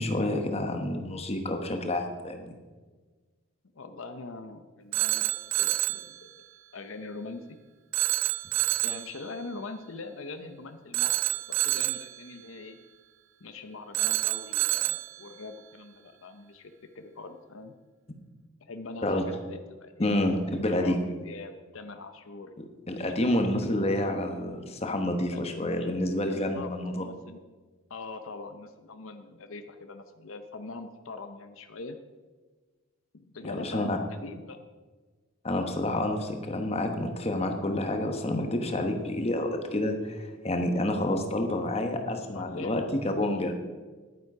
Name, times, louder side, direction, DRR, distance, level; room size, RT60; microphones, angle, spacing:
voice 1, 0.0-2.5 19.0-19.2 20.0-21.1 22.9-27.0 33.4-34.0 35.4-43.5, left 1 dB, 30° left, 5 dB, 1.1 m, -29 dB
voice 2, 3.8-6.3 6.7-7.6 8.8-12.8 13.4-17.7 18.6-20.1 20.7-22.5 22.9-23.4 25.3-25.4 26.1-27.4 27.9-32.0 33.1-34.6 42.3-42.9, left 3 dB, 75° left, 8 dB, 0.7 m, -42 dB
Telephone, 4.9-6.1 7.9-9.1 10.9-12.1 13.9-15.1, right 17 dB, 70° right, 0.4 m, -27 dB
11.0 x 9.1 x 4.8 m, 1.4 s
head